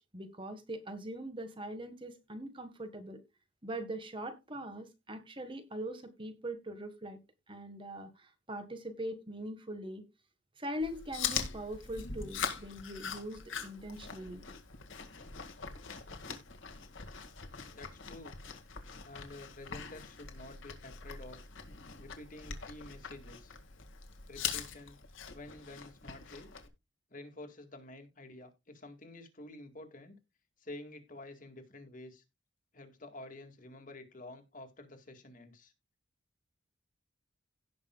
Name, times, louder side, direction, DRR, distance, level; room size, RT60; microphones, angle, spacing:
voice 1, 0.0-3.2 3.6-7.2 7.5-10.0 10.6-14.4, right 1 dB, 25° right, 1.5 m, -42 dB
Chewing mastication, 10.8-26.7, left 7 dB, 70° left, 1.9 m, -42 dB
voice 2, 17.7-18.4 19.0-21.4 22.0-23.5 24.3-25.0 25.3-26.5 27.1-30.2 30.6-32.2 32.7-35.7, left 2 dB, 40° left, 2.0 m, -50 dB
17.0 x 5.9 x 2.3 m
head